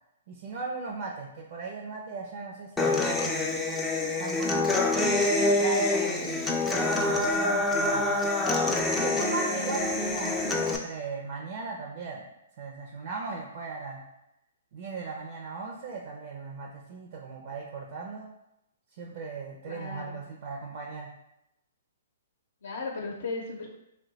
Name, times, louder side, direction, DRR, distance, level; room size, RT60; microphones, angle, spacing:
voice 1, 0.3-3.5 4.2-4.8 5.3-8.6 9.0-12.2 12.6-14.0 14.7-18.3 19.0-21.1, right 4 dB, 50° right, -1 dB, 0.6 m, -37 dB
Human voice / Acoustic guitar, 2.8-10.8, left 2 dB, 5° left, 0.4 m, -26 dB
voice 2, 19.6-20.2 22.6-23.7, left 3 dB, 75° left, 0 dB, 0.6 m, -36 dB
2.7 x 2.2 x 3.8 m, 0.85 s
hypercardioid pair, 140°, 0 cm